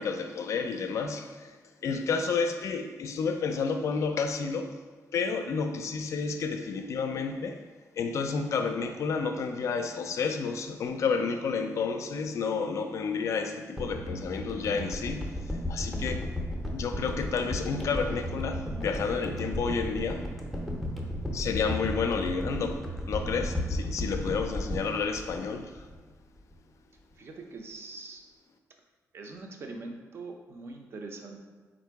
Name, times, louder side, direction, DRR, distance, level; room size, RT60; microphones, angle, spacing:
voice 1, 0.0-1.5 1.8-4.8 5.1-7.7 7.9-15.4 15.7-16.3 16.7-20.3 21.3-25.8, left 5 dB, 60° left, 7 dB, 0.4 m, -30 dB
sound 1, 13.8-26.1 26.4-26.5, left 1 dB, ahead, 0.5 m, -34 dB
voice 2, 27.1-28.2 29.1-31.4, right 3 dB, 45° right, 3 dB, 0.5 m, -42 dB
3.7 x 2.5 x 4.6 m, 1.4 s
wide cardioid pair, 140°, 6 cm